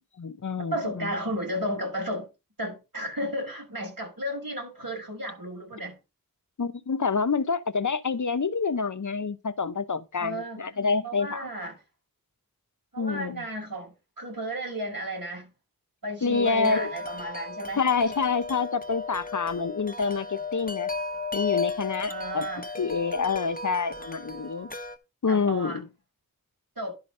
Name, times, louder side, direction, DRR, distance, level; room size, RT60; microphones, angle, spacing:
voice 1, 0.2-1.1 6.6-11.5 13.0-13.4 16.2-16.9 17.8-20.9 21.3-22.4 22.8-24.7 25.2-25.8, left 5 dB, 60° left, 0.7 m, -27 dB
voice 2, 0.7-2.3 2.6-6.0 10.2-10.6 11.0-11.8 12.9-15.5 16.0-17.8 22.1-22.6 25.3-25.8 26.8-26.9, equal, 75° right, 5.7 m, -33 dB
Wind chime, 16.3-25.0, left 4 dB, 25° left, 0.9 m, -35 dB
11.5 x 3.9 x 5.4 m
wide cardioid pair, 40°, 35 cm